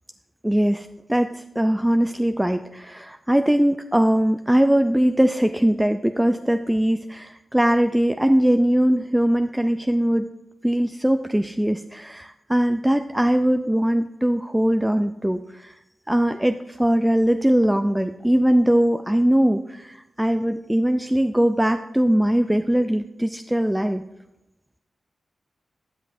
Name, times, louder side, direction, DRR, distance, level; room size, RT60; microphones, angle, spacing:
voice 1, 0.4-10.3 10.6-15.8 16.1-24.0, equal, 10° right, 7 dB, 0.4 m, -21 dB
12.5 x 6.8 x 2.6 m, 0.88 s
cardioid pair, 50°, 0 cm